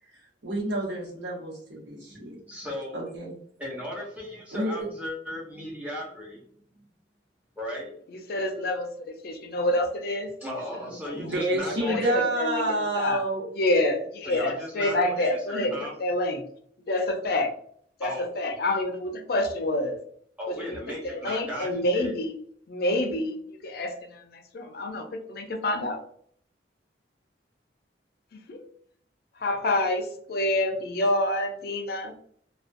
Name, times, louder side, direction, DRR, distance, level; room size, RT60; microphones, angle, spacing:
voice 1, 0.4-2.4 2.9-3.4 4.5-4.9 11.2-13.4, right 1 dB, 85° right, -5 dB, 1.0 m, -29 dB
voice 2, 2.5-3.1 3.6-6.4 6.7-6.8 7.6-7.9 10.4-12.2 14.3-15.9 18.0-18.3 20.4-22.1, equal, 10° right, -4 dB, 0.7 m, -36 dB
voice 3, 8.3-10.3 10.7-11.1 11.6-12.6 12.9-13.2 13.5-16.4 16.9-17.5 18.0-20.0 20.5-22.3 22.7-23.4 23.6-26.0 28.3-28.7 29.4-32.1, left 1 dB, 55° left, 5 dB, 0.4 m, -28 dB
2.4 x 2.2 x 2.5 m, 0.62 s
head